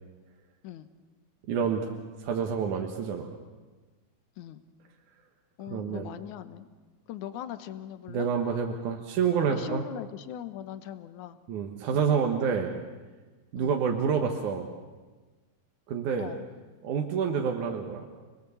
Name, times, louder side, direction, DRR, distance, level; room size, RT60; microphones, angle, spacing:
voice 1, 1.5-1.9 2.2-3.3 5.7-6.1 8.1-9.8 11.5-12.7 13.5-14.7 15.9-16.3 16.8-18.1, right 6 dB, 65° right, 2 dB, 2.6 m, -28 dB
voice 2, 5.6-6.7 7.1-8.3 9.5-11.4 11.9-12.2 13.6-13.8 16.2-16.4, left 11 dB, 70° left, 11 dB, 2.3 m, -40 dB
29.0 x 21.0 x 7.1 m, 1.3 s
omnidirectional pair, 4.0 m